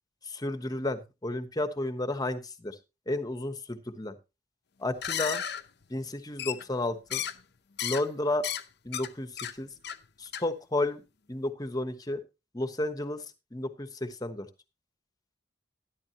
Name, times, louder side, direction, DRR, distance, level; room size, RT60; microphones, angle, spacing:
voice 1, 0.2-2.8 3.1-4.1 4.8-5.4 5.9-7.2 7.8-8.4 8.8-9.7 10.2-11.0 11.3-12.2 12.5-13.2 13.5-14.5, left 2 dB, 20° left, 10 dB, 1.1 m, -32 dB
sound 1, 4.9-5.6 6.4-6.8 7.1-7.4 7.8-8.0 8.4-8.6 8.9-9.1 9.4-9.5 9.8-10.0 10.3-10.4, left 10 dB, 60° left, 0.8 m, -33 dB
12.5 x 11.5 x 2.9 m, 0.27 s
head